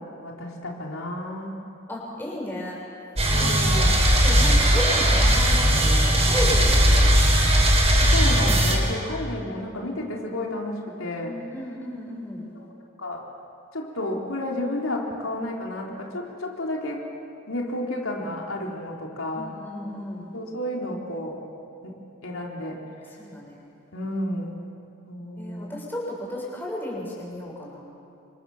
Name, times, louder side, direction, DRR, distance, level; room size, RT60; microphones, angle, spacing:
voice 1, 0.0-1.6 3.3-4.1 8.1-11.4 12.5-12.7 13.0-13.2 13.7-17.0 17.5-19.5 20.3-21.4 21.8-22.0 22.2-22.8 23.9-24.7 25.1-25.8, left 1 dB, 85° left, -1 dB, 3.7 m, -31 dB
voice 2, 1.9-2.8 3.3-7.6 11.2-12.5 19.3-20.3 23.2-23.7 25.4-27.8, left 1 dB, 10° left, -3 dB, 6.5 m, -34 dB
sound 1, 3.2-8.8, equal, 30° right, 5.6 m, -18 dB
29.5 x 25.5 x 7.2 m, 2.6 s
head